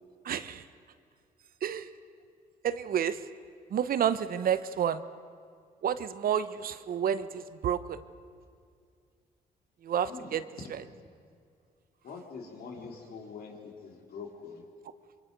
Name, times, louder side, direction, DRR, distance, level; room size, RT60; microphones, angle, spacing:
voice 1, 0.2-0.6 1.6-1.9 2.6-3.2 3.7-5.0 5.8-8.0 9.8-10.4 10.7-10.8, right 9 dB, 60° right, 13 dB, 0.9 m, -30 dB
voice 2, 12.0-14.6, left 5 dB, 70° left, 1 dB, 3.2 m, -44 dB
25.5 x 22.5 x 5.3 m, 2.2 s
cardioid pair, 75°, 17 cm